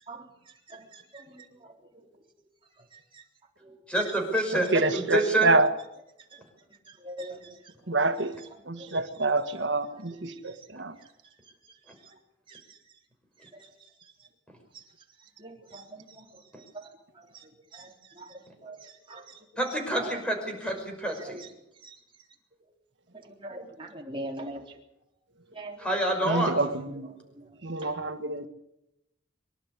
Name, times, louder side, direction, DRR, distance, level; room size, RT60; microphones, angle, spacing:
voice 1, 0.7-1.7 3.1-3.2 3.6-3.7 6.3-6.4 7.0-7.7 8.8-9.3 9.8-10.0 10.5-10.6 12.5-12.8 13.6-13.7 14.7-14.8 15.4-16.2 16.7-16.9 17.3-19.4 20.0-20.1 21.2-21.5 21.8-21.9 23.3-24.6 25.5-25.9 27.4-27.5 27.8-27.9, right 1 dB, 25° right, 3.6 m, -43 dB
voice 2, 3.9-5.5 19.6-21.4 25.8-26.6, right 1 dB, 5° left, 5.7 m, -27 dB
voice 3, 4.6-5.7 7.9-8.3 8.7-10.9 26.2-27.1 27.6-28.5, right 2 dB, 70° right, 1.5 m, -27 dB
24.5 x 12.0 x 9.8 m
head